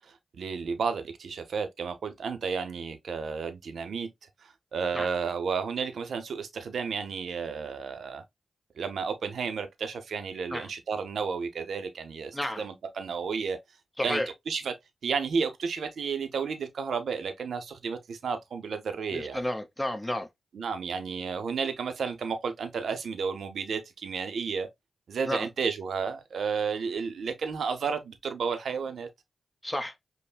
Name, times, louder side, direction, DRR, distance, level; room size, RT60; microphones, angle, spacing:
voice 1, 0.3-4.1 4.4-8.2 8.8-13.6 14.0-14.7 15.0-19.4 20.5-24.7 25.1-29.1, right 5 dB, 80° right, 0.6 m, -32 dB
voice 2, 14.0-14.3 19.1-20.3 25.3-25.5 29.6-29.9, left 1 dB, 10° left, 0.8 m, -31 dB
5.4 x 2.1 x 2.3 m
cardioid pair, 45°, 0 cm